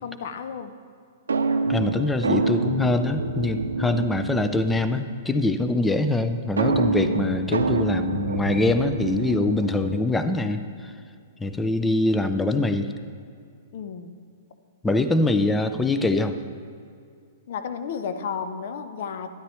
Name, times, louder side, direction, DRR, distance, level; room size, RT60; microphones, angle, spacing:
voice 1, 0.0-0.7 13.7-14.1 17.5-19.3, left 6 dB, 60° left, 9 dB, 0.7 m, -32 dB
sound 1, 1.3-5.0 6.6-10.2, right 3 dB, 85° right, 0.5 m, -26 dB
voice 2, 1.7-10.9 11.4-12.9 14.8-16.4, left 2 dB, 10° left, 9 dB, 0.5 m, -24 dB
12.5 x 10.5 x 3.1 m, 2.3 s
hypercardioid pair, 115°, 0 cm